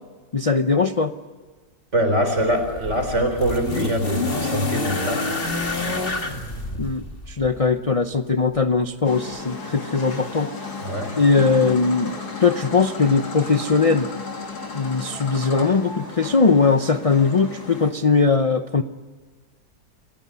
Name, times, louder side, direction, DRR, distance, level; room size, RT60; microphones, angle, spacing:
voice 1, 0.3-1.1 6.8-10.5 11.1-12.1 12.4-14.1 14.7-18.8, left 4 dB, 55° left, 9 dB, 0.3 m, -20 dB
voice 2, 1.9-5.2 10.8-11.2, equal, 45° right, 6 dB, 4.5 m, -23 dB
sound 1, 2.4-7.6 8.7-8.8, left 3 dB, 35° left, 2.3 m, -28 dB
sound 2, 9.0-17.9, left 3 dB, 70° left, 3.5 m, -34 dB
28.0 x 16.0 x 9.6 m, 1.5 s
omnidirectional pair, 1.8 m